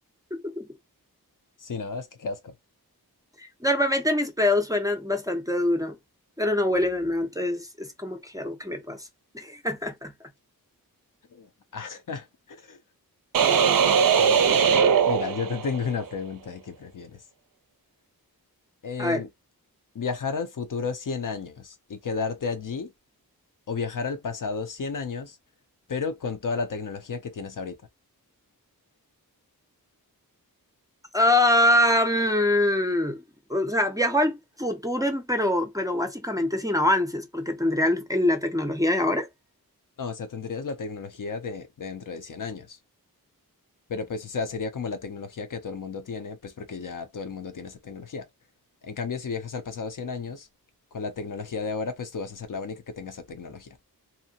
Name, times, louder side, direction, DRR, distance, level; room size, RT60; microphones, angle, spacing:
voice 1, 0.3-0.7 3.4-6.0 6.4-9.1 9.3-10.1 19.0-19.2 31.1-33.2 33.5-39.3, left 1 dB, 10° right, 0.5 m, -24 dB
voice 2, 1.6-2.5 11.3-12.8 13.4-13.5 14.0-14.6 15.1-17.2 18.8-19.3 19.9-22.9 23.7-25.4 25.9-27.8 40.0-42.8 43.9-48.3 48.8-50.5 50.9-53.7, left 5 dB, 55° left, 0.6 m, -33 dB
sound 1, 13.3-16.0, right 7 dB, 60° right, 0.5 m, -20 dB
2.7 x 2.1 x 2.7 m
wide cardioid pair, 70°, 37 cm